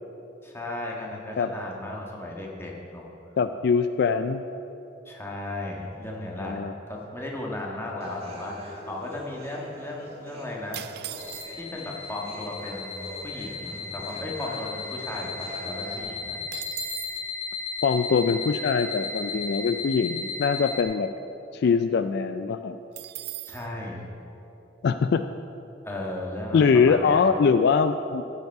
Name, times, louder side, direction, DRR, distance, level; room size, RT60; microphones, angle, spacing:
voice 1, 0.4-3.1 5.0-6.6 6.9-10.8 11.5-16.4 23.5-24.1 25.8-27.2, left 1 dB, 15° left, -2 dB, 1.5 m, -35 dB
voice 2, 3.4-4.4 6.4-6.7 17.8-21.1 21.5-22.8 24.8-25.3 26.5-28.2, left 5 dB, 60° left, 10 dB, 0.3 m, -23 dB
sound 1, 8.0-16.0, right 1 dB, 35° right, 1.6 m, -44 dB
sound 2, 10.7-11.8 12.6-12.7 12.9-13.2 13.7-15.2 15.5-15.6 15.9-17.3 22.9-23.7, right 15 dB, 60° right, 0.4 m, -39 dB
sound 3, 11.2-20.8, left 4 dB, 35° left, 1.4 m, -35 dB
14.0 x 8.1 x 4.7 m, 2.9 s
head